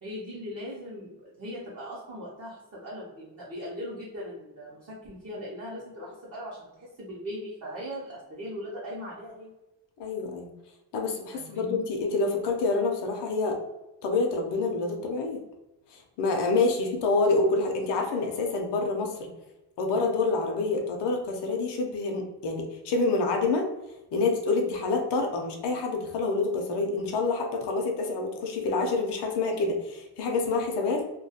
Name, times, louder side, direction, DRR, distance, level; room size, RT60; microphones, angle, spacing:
voice 1, 0.0-9.5 11.3-11.8, equal, 35° right, -7 dB, 0.6 m, -39 dB
voice 2, 10.0-10.5 10.9-13.6 14.0-15.4 15.9-19.3 19.8-23.7 24.1-31.0, left 3 dB, 70° left, 3 dB, 0.6 m, -27 dB
2.2 x 2.2 x 2.7 m, 0.97 s
wide cardioid pair, 155°, 44 cm